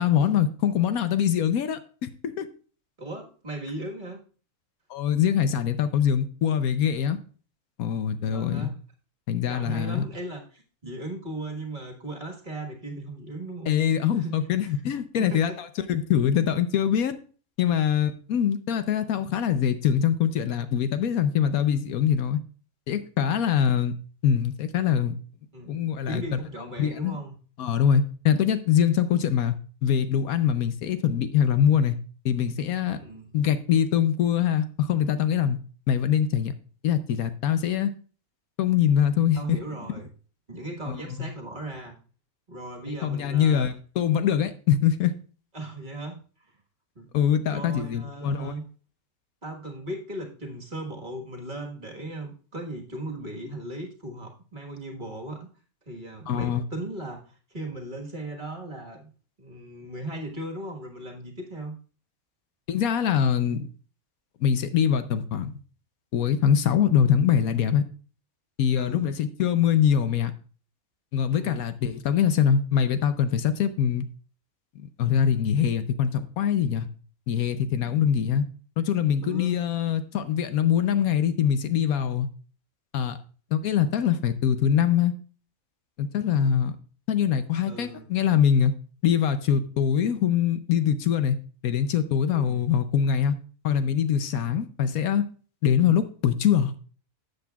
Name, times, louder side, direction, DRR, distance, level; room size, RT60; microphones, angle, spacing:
voice 1, 0.0-2.5 4.9-7.2 7.8-8.7 9.3-10.1 13.7-17.2 17.6-22.4 22.9-23.9 24.2-25.2 25.7-26.2 26.8-27.2 27.6-29.5 29.8-32.0 32.2-33.0 33.3-35.6 35.9-36.5 36.8-37.9 38.6-39.4 40.9-41.0 42.9-45.1 47.1-48.5 56.3-56.6 62.7-63.7 64.4-65.5 66.1-67.8 68.6-70.3 71.1-74.0 75.0-76.9 77.3-78.5 78.8-82.3 82.9-83.2 83.5-85.1 86.0-86.7 87.1-88.7 89.0-91.4 91.6-93.4 93.6-95.2 95.6-96.7, left 8 dB, 75° left, 11 dB, 1.1 m, -23 dB
voice 2, 3.0-4.2 8.3-8.7 9.5-14.4 15.2-15.6 25.5-27.4 33.0-33.3 39.3-40.1 40.5-42.0 42.5-43.7 45.5-46.2 46.9-47.1 47.5-48.6 49.4-55.5 55.9-59.0 59.4-61.7 68.7-69.1 71.3-71.6 79.2-79.6 87.6-88.1 92.3-92.6, right 1 dB, 35° right, 1 dB, 1.6 m, -37 dB
13.0 x 7.8 x 2.3 m, 0.39 s
omnidirectional pair, 1.6 m